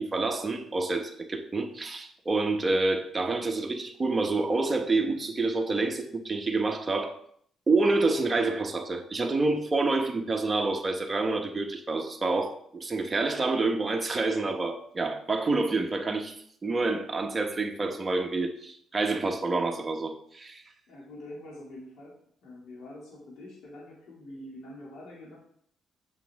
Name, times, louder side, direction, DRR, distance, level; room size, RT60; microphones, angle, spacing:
voice 1, 0.0-7.1 7.7-16.3 16.6-20.6, right 3 dB, 25° right, 4 dB, 1.1 m, -28 dB
voice 2, 20.9-25.4, left 1 dB, 75° left, -4 dB, 2.6 m, -45 dB
7.5 x 6.1 x 3.6 m, 0.64 s
cardioid pair, 90°, 0 cm